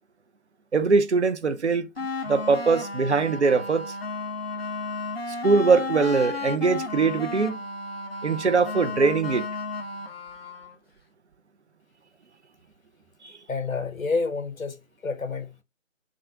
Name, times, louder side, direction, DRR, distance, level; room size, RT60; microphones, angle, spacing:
voice 1, 0.7-1.9 2.3-4.0 5.4-7.6 8.2-9.5 13.2-13.4, right 4 dB, 60° right, 0.5 m, -22 dB
sound 1, 2.0-10.8, left 3 dB, 50° left, 0.4 m, -33 dB
voice 2, 13.5-15.6, left 4 dB, 85° left, 0.7 m, -29 dB
2.5 x 2.4 x 2.4 m
figure-of-eight pair, 155°, 40 cm